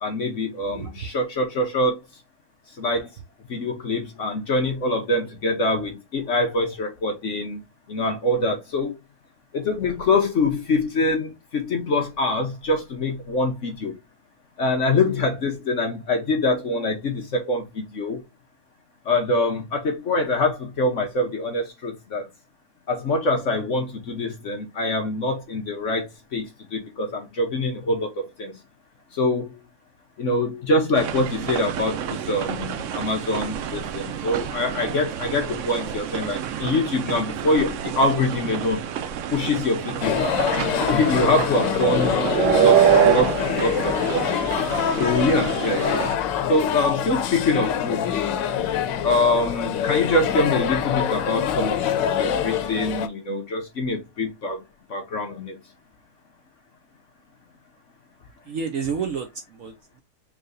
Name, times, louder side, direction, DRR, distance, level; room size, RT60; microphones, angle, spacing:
voice 1, 0.0-2.0 2.8-3.1 3.5-7.6 7.9-8.9 9.5-13.9 14.6-18.2 19.1-22.2 22.9-28.6 29.1-29.6 30.2-38.8 39.3-40.2 40.7-44.3 45.0-46.1 46.5-48.3 49.0-54.6 54.9-55.6, left 2 dB, 50° left, 1.0 m, -24 dB
voice 2, 0.7-1.1 58.4-60.0, right 6 dB, 60° right, 0.9 m, -30 dB
sound 1, 30.9-46.2, right 9 dB, 90° right, 0.6 m, -26 dB
sound 2, 40.0-53.1, left 9 dB, 90° left, 1.3 m, -25 dB
4.7 x 3.2 x 2.5 m
omnidirectional pair, 1.9 m